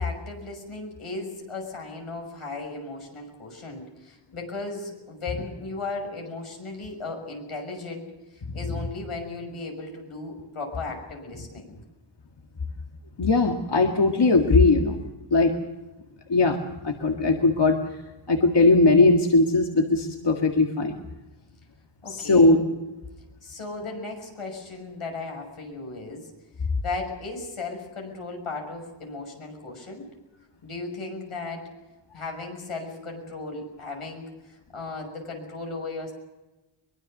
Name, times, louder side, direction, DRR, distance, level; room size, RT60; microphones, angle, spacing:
voice 1, 0.0-8.1 8.5-11.8 22.0-22.6 23.4-26.3 26.8-30.1 30.6-31.7 32.1-36.1, left 3 dB, 85° left, 2 dB, 6.4 m, -36 dB
voice 2, 13.2-15.0 15.3-15.5 16.3-17.8 18.3-21.0 22.1-22.6, left 3 dB, 55° left, 2 dB, 2.1 m, -19 dB
23.0 x 22.0 x 6.7 m, 1.1 s
wide cardioid pair, 105°, 49 cm